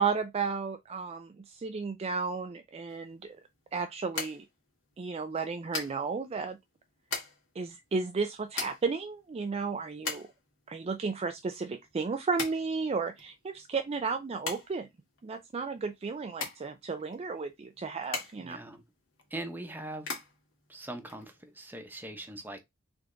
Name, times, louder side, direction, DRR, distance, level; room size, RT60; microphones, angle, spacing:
voice 1, 0.0-3.4 3.7-4.5 5.0-6.6 7.6-10.3 10.7-14.9 15.2-18.6, right 4 dB, 30° right, 0.3 m, -33 dB
sound 1, 2.9-21.7, left 4 dB, 65° left, 1.8 m, -42 dB
voice 2, 18.4-18.8 19.3-20.1 20.7-22.6, right 1 dB, 10° right, 0.8 m, -41 dB
3.5 x 3.4 x 3.8 m
head